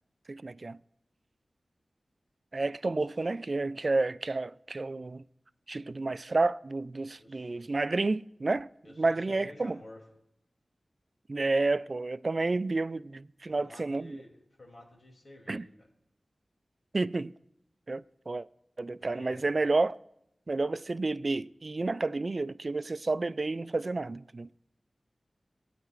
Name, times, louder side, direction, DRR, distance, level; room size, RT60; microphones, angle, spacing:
voice 1, 0.3-0.8 2.5-5.2 5.7-8.7 9.0-9.8 11.3-14.2 15.5-15.6 16.9-17.3 17.9-18.5 18.8-20.0 20.5-24.5, right 3 dB, 55° right, 0.3 m, -30 dB
voice 2, 7.2-7.7 8.8-10.0 13.5-15.9 19.0-19.5, left 1 dB, 65° left, 2.9 m, -51 dB
17.0 x 9.1 x 2.5 m
cardioid pair, 45°, 0 cm